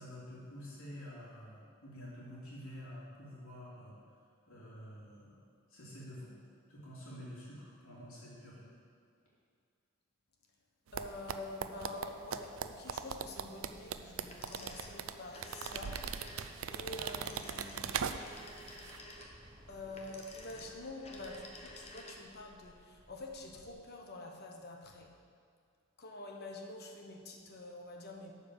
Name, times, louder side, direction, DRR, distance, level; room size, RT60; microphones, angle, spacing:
voice 1, 0.0-4.0 4.5-5.4 5.7-6.3 6.7-8.7, equal, 85° left, -7 dB, 2.8 m, -49 dB
voice 2, 10.9-18.1 19.7-25.1 26.0-28.3, left 2 dB, 50° left, 2 dB, 1.2 m, -47 dB
sound 1, 10.9-18.5 18.8-19.0, right 7 dB, 70° right, 0.5 m, -39 dB
sound 2, 13.5-23.7, equal, 20° right, 1.3 m, -60 dB
sound 3, 14.3-22.4, left 1 dB, 30° left, 1.1 m, -52 dB
11.5 x 5.1 x 6.9 m, 2.2 s
head